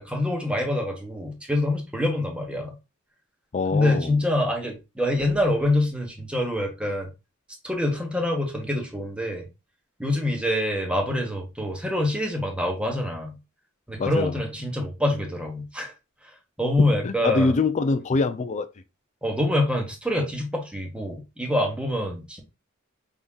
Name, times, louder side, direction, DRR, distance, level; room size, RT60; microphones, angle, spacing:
voice 1, 0.0-2.7 3.7-7.1 7.6-9.5 10.0-13.3 13.9-15.9 16.6-17.6 19.2-22.4, left 1 dB, 5° right, 1.1 m, -25 dB
voice 2, 3.5-4.1 14.0-14.4 17.0-18.7, left 3 dB, 35° left, 0.4 m, -24 dB
5.3 x 3.7 x 2.4 m
head